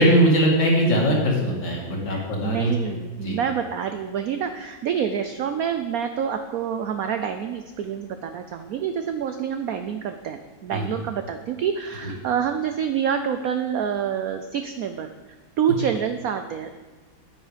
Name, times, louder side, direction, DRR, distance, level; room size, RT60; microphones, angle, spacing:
voice 1, 0.0-2.7 3.2-3.4 10.7-10.8, equal, 70° left, -2 dB, 2.8 m, -20 dB
voice 2, 2.1-15.1 15.6-16.7, right 8 dB, 85° right, 8 dB, 0.7 m, -27 dB
9.1 x 9.0 x 5.0 m, 1.2 s
omnidirectional pair, 2.1 m